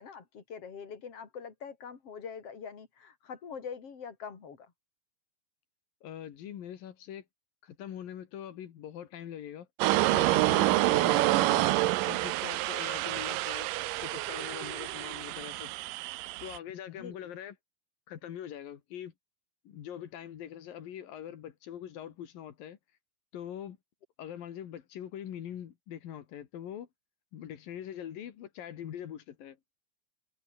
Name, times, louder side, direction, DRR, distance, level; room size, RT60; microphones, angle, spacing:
voice 1, 0.0-4.7 10.9-11.2 16.9-17.1, left 6 dB, 45° left, 4.5 m, -44 dB
voice 2, 6.0-7.3 7.6-9.7 10.1-11.6 12.0-13.7 14.0-15.7 16.4-17.6 18.1-19.1 19.7-22.8 23.3-23.8 24.2-26.9 27.3-29.6, left 10 dB, 85° left, 3.8 m, -43 dB
sound 1, 9.8-16.6, right 18 dB, 85° right, 2.3 m, -28 dB
omnidirectional pair, 3.9 m